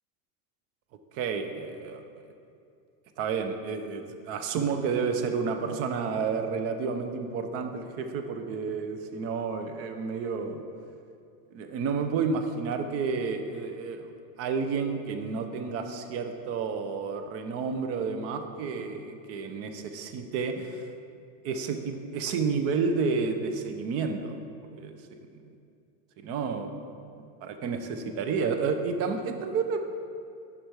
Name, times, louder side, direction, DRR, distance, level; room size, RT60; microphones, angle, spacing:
voice 1, 1.1-2.0 3.2-10.6 11.5-14.1 14.4-20.9 21.4-24.4 24.7-25.0 26.2-26.7 27.4-29.8, right 5 dB, 35° right, 6 dB, 0.4 m, -30 dB
5.5 x 4.9 x 4.5 m, 2.5 s
supercardioid pair, 130°, 48 cm